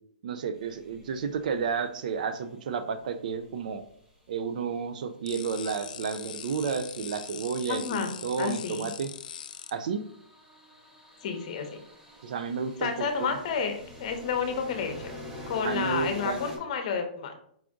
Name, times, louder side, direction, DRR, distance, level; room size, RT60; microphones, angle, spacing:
voice 1, 0.2-3.8 4.3-9.1 9.7-10.0 12.2-12.9 13.2-13.3 15.6-16.4, right 6 dB, 55° right, 9 dB, 0.3 m, -31 dB
sound 1, 0.5-4.9 6.4-16.6, left 1 dB, 10° right, 0.7 m, -47 dB
sound 2, 5.3-9.7, left 9 dB, 60° left, 0.4 m, -41 dB
voice 2, 7.7-8.1 8.4-8.9 11.2-11.8 12.8-15.1 15.5-17.3, left 6 dB, 45° left, 6 dB, 0.8 m, -30 dB
4.7 x 2.5 x 3.6 m, 0.65 s
hypercardioid pair, 160°, 5 cm